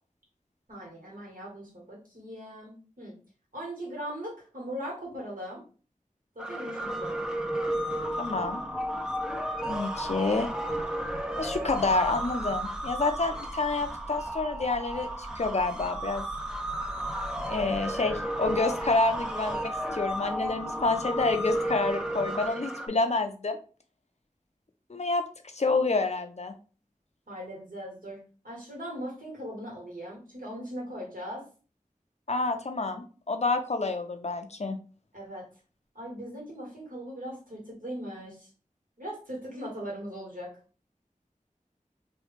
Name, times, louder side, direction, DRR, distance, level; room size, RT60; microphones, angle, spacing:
voice 1, 0.7-3.1 3.5-5.6 6.3-7.2 17.5-17.7 27.3-31.4 35.1-35.5 35.9-38.5 39.0-40.5, equal, 75° right, -3 dB, 1.5 m, -39 dB
sound 1, 6.4-22.9, right 1 dB, 5° right, 0.4 m, -33 dB
voice 2, 8.2-8.6 9.6-10.5 11.4-16.2 17.5-23.6 24.9-25.2 25.5-26.5 32.3-34.8, left 3 dB, 50° left, 6 dB, 0.5 m, -28 dB
3.0 x 2.3 x 3.2 m, 0.37 s
wide cardioid pair, 50°, 14 cm